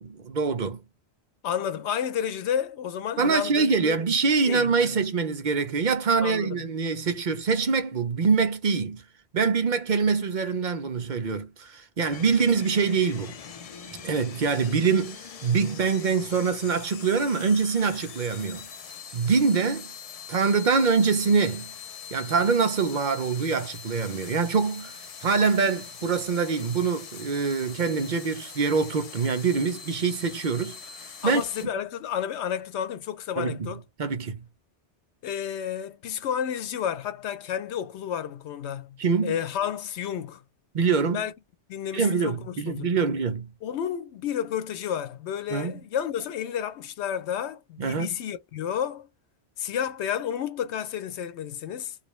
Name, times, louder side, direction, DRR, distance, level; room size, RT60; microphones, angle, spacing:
voice 1, 0.0-0.8 3.2-9.0 9.3-13.4 14.0-18.7 19.1-19.9 20.3-21.7 22.1-24.9 25.2-31.7 33.4-33.7 34.0-34.4 39.0-39.4 40.7-41.2 41.9-43.5 45.5-45.8 47.8-48.2, right 5 dB, 50° right, 0.7 m, -24 dB
voice 2, 1.4-4.0 4.5-4.9 6.2-6.6 31.2-33.8 35.2-39.0 39.2-40.4 41.1-41.3 41.7-42.9 43.6-49.1 49.6-52.0, left 9 dB, 90° left, 0.9 m, -31 dB
sound 1, 12.1-31.6, left 7 dB, 50° left, 0.4 m, -43 dB
3.1 x 2.5 x 3.0 m
omnidirectional pair, 1.1 m